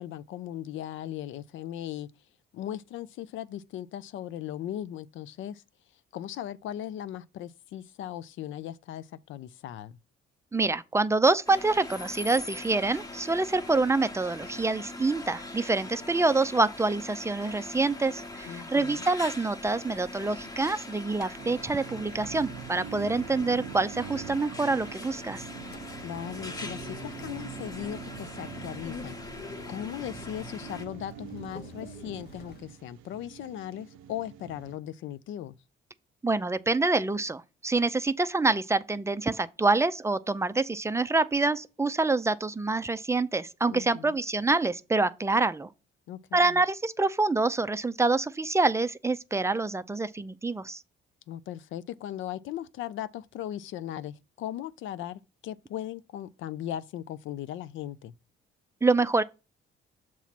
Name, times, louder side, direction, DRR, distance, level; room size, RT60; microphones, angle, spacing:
voice 1, 0.0-2.1 2.5-5.6 6.1-10.0 18.5-19.1 26.0-29.2 29.7-35.5 43.7-44.2 46.1-46.6 51.3-58.1, left 11 dB, 75° left, 0.5 m, -38 dB
voice 2, 10.5-25.4 36.2-45.7 46.3-50.8 58.8-59.2, right 3 dB, 15° right, 0.4 m, -26 dB
sound 1, 11.5-30.9, left 2 dB, 20° left, 0.9 m, -42 dB
sound 2, 21.4-34.8, right 10 dB, 85° right, 0.5 m, -44 dB
sound 3, 25.6-32.6, left 5 dB, 55° left, 0.8 m, -47 dB
7.1 x 3.0 x 5.8 m
cardioid pair, 90°, 20 cm